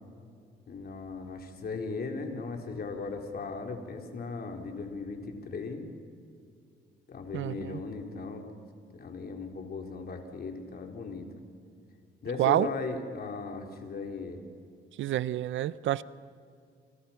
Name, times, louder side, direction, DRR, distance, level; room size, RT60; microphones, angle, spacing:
voice 1, 0.7-5.8 7.1-8.4 8.9-11.3 12.2-14.4, left 4 dB, 50° left, 3 dB, 4.2 m, -37 dB
voice 2, 7.3-7.8 12.4-12.7 15.0-16.0, right 13 dB, 75° right, 18 dB, 0.7 m, -28 dB
29.0 x 27.5 x 6.0 m, 2.3 s
cardioid pair, 90°, 20 cm